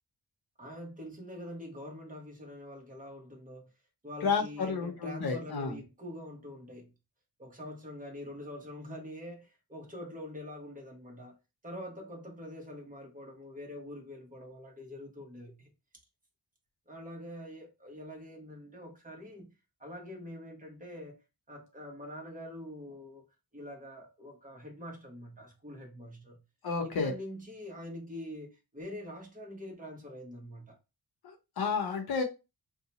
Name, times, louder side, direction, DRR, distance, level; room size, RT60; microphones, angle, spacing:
voice 1, 0.6-3.7 4.0-6.9 7.4-11.4 11.6-15.7 16.9-19.5 19.8-21.2 21.5-23.2 23.5-26.4 26.8-30.8, left 1 dB, 20° right, 1.0 m, -45 dB
voice 2, 4.2-5.8 26.6-27.1 31.2-32.2, left 5 dB, 60° left, 0.8 m, -31 dB
2.8 x 2.2 x 4.1 m
wide cardioid pair, 170°, 41 cm